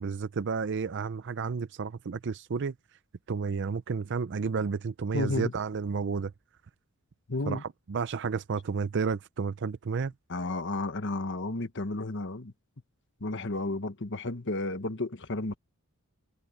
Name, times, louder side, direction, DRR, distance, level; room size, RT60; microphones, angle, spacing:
voice 1, 0.0-2.7 3.3-6.3 7.5-10.1, right 5 dB, 50° right, 0.5 m, -31 dB
voice 2, 5.1-5.5 7.3-7.6 10.3-12.5 13.2-15.5, left 2 dB, 55° left, 1.3 m, -32 dB
head